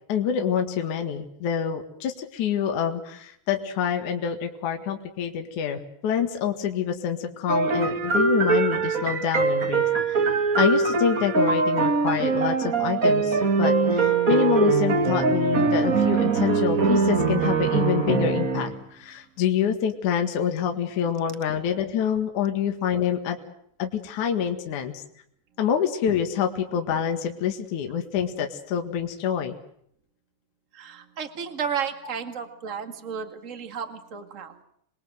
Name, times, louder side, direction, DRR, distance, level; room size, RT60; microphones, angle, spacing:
voice 1, 0.1-10.3 10.6-23.4 23.8-25.0 25.6-29.5, left 8 dB, 55° left, 4 dB, 2.9 m, -26 dB
sound 1, 7.5-18.8, right 4 dB, 55° right, 0.9 m, -22 dB
voice 2, 30.7-34.6, right 7 dB, 35° right, 7 dB, 1.3 m, -33 dB
27.5 x 21.0 x 7.9 m, 0.70 s
omnidirectional pair, 4.8 m